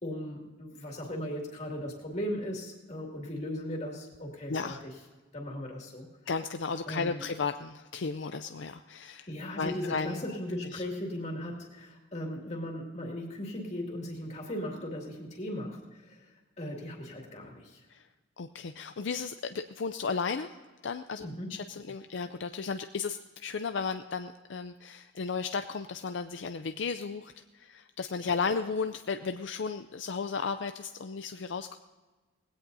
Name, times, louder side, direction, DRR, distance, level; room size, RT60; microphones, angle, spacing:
voice 1, 0.0-4.7 5.3-6.1 6.9-7.2 9.3-17.8 21.2-21.6, left 1 dB, 35° left, -1 dB, 2.4 m, -37 dB
voice 2, 6.3-9.3 9.6-10.2 10.7-10.8 17.9-18.0 18.4-20.6 20.8-31.8, left 5 dB, 65° left, 8 dB, 0.5 m, -34 dB
19.5 x 16.5 x 2.7 m, 1.3 s
head